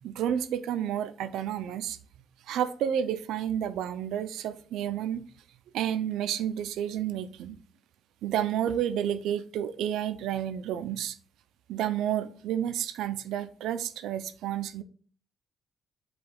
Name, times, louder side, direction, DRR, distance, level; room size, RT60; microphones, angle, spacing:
voice 1, 0.0-2.0 2.5-5.2 5.7-7.6 8.2-11.2 11.7-14.8, right 10 dB, 85° right, 0.3 m, -30 dB
4.8 x 2.3 x 4.3 m
cardioid pair, 90°, 0 cm